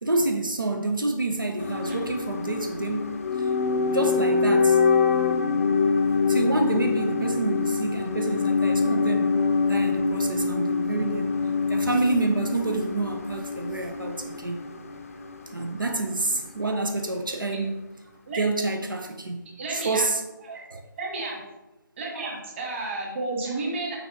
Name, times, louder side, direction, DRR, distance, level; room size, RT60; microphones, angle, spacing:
voice 1, 0.0-3.5 3.8-4.8 6.3-9.3 9.7-11.3 11.7-14.6 15.5-17.8 18.3-19.4 19.7-20.2 20.5-20.8 22.1-22.2, right 2 dB, 75° right, 1.0 m, -28 dB
sound 1, 1.6-15.7 15.9-16.0, left 4 dB, 40° left, 0.6 m, -25 dB
voice 2, 19.6-20.0 20.4-20.6 21.0-21.4 22.0-24.0, right 2 dB, 35° right, 2.1 m, -32 dB
6.2 x 6.1 x 3.3 m
figure-of-eight pair, 150°, 11 cm